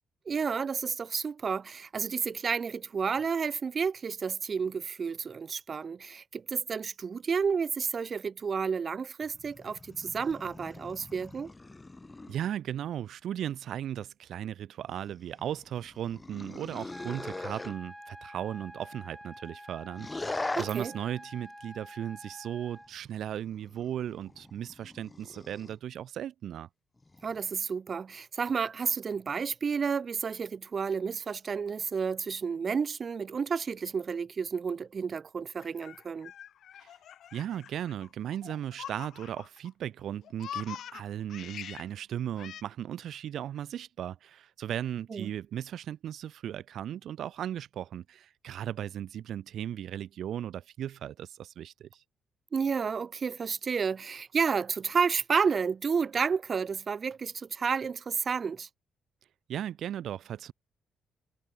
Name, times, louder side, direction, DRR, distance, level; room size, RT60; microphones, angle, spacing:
voice 1, 0.3-11.5 20.5-20.9 27.2-36.3 45.1-45.3 52.5-58.7, right 6 dB, 40° right, 0.3 m, -31 dB
sound 1, 9.2-12.4 14.9-17.8 19.9-20.7 22.8-25.8 27.0-27.4, left 2 dB, 20° left, 0.6 m, -41 dB
voice 2, 12.3-26.7 36.8-36.9 37.3-52.0 59.5-60.5, right 10 dB, 70° right, 1.7 m, -36 dB
sound 2, 16.9-22.9, equal, ahead, 6.4 m, -48 dB
Laughter, 35.6-39.7 40.0-41.9 42.4-42.6, left 10 dB, 70° left, 0.5 m, -44 dB
cardioid pair, 90°, 0 cm